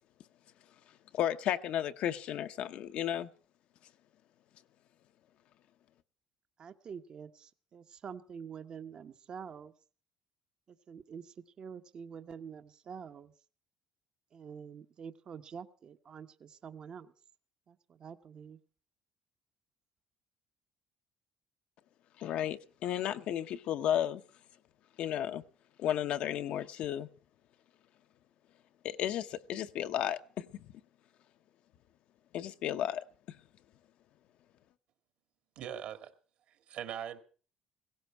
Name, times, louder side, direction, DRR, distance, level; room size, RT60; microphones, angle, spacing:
voice 1, 1.1-3.3 22.2-24.2 25.0-25.4 25.8-27.1 28.8-30.5 32.3-33.0, left 11 dB, 65° left, 0.8 m, -33 dB
voice 2, 6.6-9.7 10.9-13.3 14.3-17.1 17.7-18.6, right 7 dB, 40° right, 0.9 m, -47 dB
voice 3, 35.6-36.1 36.5-37.2, right 9 dB, 65° right, 2.0 m, -41 dB
17.0 x 16.0 x 4.6 m
cardioid pair, 135°, 2 cm